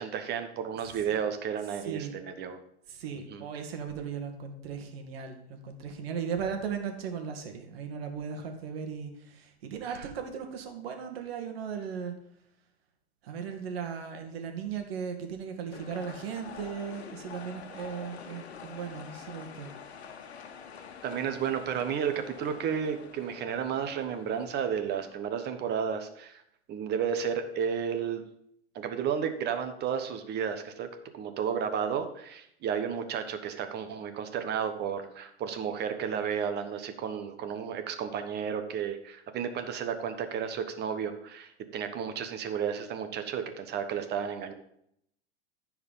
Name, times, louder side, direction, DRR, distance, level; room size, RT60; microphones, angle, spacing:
voice 1, 0.0-2.6 3.3-3.4 9.8-10.0 21.0-26.4 26.7-28.2 28.7-30.9 31.1-44.5, right 7 dB, 30° right, 8 dB, 1.2 m, -32 dB
voice 2, 2.9-12.1 13.2-19.7, right 7 dB, 65° right, 5 dB, 2.1 m, -37 dB
sound 1, 15.7-25.1, left 6 dB, 80° left, 1.4 m, -47 dB
13.5 x 4.9 x 5.5 m, 0.73 s
hypercardioid pair, 115°, 32 cm